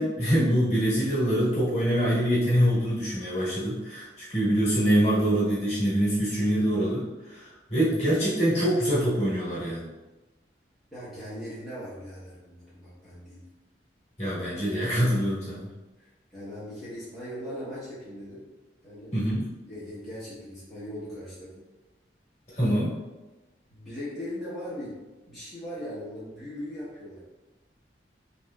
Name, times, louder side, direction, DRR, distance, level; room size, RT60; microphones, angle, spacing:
voice 1, 0.0-9.9 14.2-15.7 19.1-19.5 22.5-22.9, equal, 35° left, -9 dB, 1.2 m, -25 dB
voice 2, 10.9-13.4 16.0-18.4 18.8-19.2 19.7-21.6 22.6-22.8 23.7-25.0 25.3-27.2, equal, ahead, -12 dB, 0.9 m, -39 dB
3.0 x 2.9 x 2.2 m, 1.1 s
head